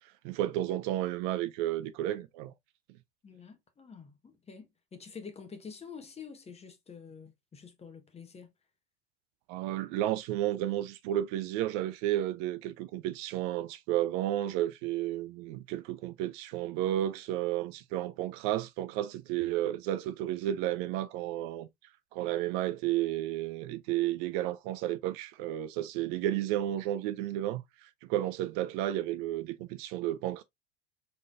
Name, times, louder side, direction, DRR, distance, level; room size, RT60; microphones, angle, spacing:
voice 1, 0.0-2.5 9.5-21.7 22.1-30.4, right 13 dB, 50° right, 0.5 m, -32 dB
voice 2, 3.2-8.5, left 6 dB, 20° left, 1.1 m, -48 dB
4.1 x 3.8 x 2.4 m
hypercardioid pair, 90°, 33 cm